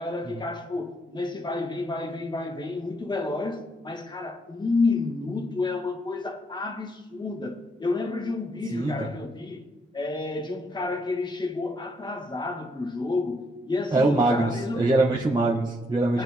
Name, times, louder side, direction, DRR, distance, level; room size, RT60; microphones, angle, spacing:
voice 1, 0.0-9.7 9.9-15.0 16.1-16.2, left 3 dB, 20° left, 2.0 m, -30 dB
voice 2, 13.9-16.2, right 2 dB, 20° right, 1.7 m, -23 dB
21.0 x 9.5 x 3.7 m
cardioid pair, 90°, 20 cm